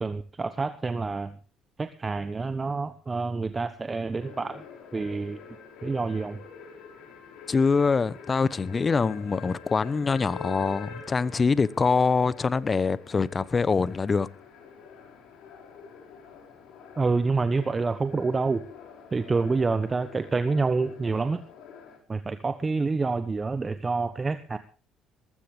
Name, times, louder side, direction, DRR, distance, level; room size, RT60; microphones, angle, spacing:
voice 1, 0.0-1.4 1.8-4.6 4.9-5.4 5.8-6.4 17.0-18.6 19.1-21.4 22.1-24.6, right 4 dB, 30° right, 1.3 m, -27 dB
sound 1, 4.2-22.0, left 5 dB, 70° left, 5.7 m, -46 dB
voice 2, 7.5-14.3, left 4 dB, 35° left, 1.0 m, -24 dB
20.0 x 15.0 x 3.4 m
hypercardioid pair, 60°, 0 cm